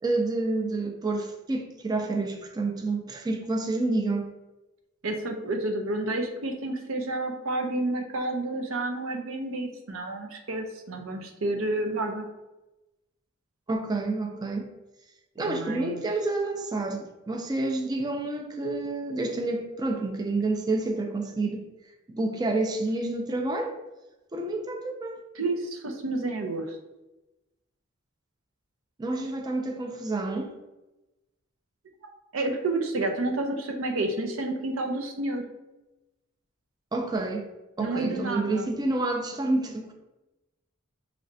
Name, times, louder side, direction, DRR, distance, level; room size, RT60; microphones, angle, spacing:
voice 1, 0.0-4.3 13.7-14.7 15.4-21.6 22.1-23.7 24.3-25.2 29.0-30.6 36.9-37.5 37.8-39.9, right 2 dB, 20° right, 3 dB, 0.4 m, -29 dB
voice 2, 5.0-12.2 15.4-16.0 25.3-26.8 32.3-35.4 37.8-38.7, right 2 dB, 85° right, 4 dB, 0.6 m, -30 dB
5.0 x 3.2 x 2.6 m, 1.0 s
head